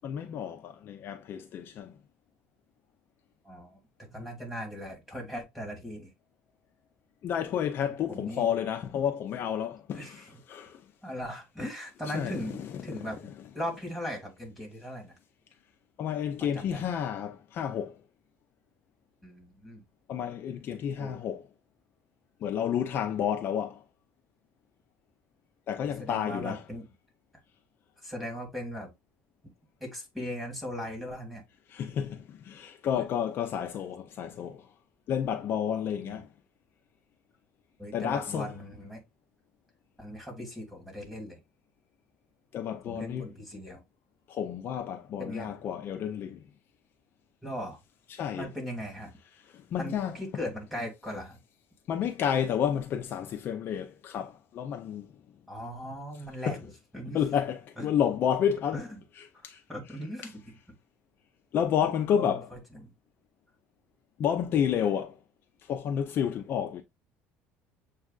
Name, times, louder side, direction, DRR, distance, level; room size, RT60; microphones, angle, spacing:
voice 1, 0.0-1.9 7.2-10.8 12.1-12.4 16.0-18.0 20.1-21.4 22.4-23.8 25.7-26.6 31.7-34.7 35.1-36.3 37.9-38.5 42.5-43.3 44.3-46.4 48.1-48.5 49.5-50.2 51.9-55.1 56.5-56.6 57.1-58.8 59.2-59.6 61.5-62.5 64.2-65.2 65.6-66.8, left 8 dB, 45° left, 0.5 m, -30 dB
voice 2, 3.4-6.1 8.1-8.5 9.9-10.4 11.0-13.2 13.5-15.2 16.4-16.9 19.2-19.8 21.0-21.2 25.8-26.8 28.0-28.9 29.8-31.4 32.9-33.0 36.0-36.2 37.8-39.0 40.0-41.4 42.9-43.8 45.2-45.6 47.4-47.8 48.3-49.1 49.8-51.4 55.5-57.2 57.8-57.9 58.7-58.9 59.7-60.5 62.1-62.9, equal, 5° right, 2.1 m, -39 dB
7.2 x 2.4 x 2.4 m
cardioid pair, 135°, 5 cm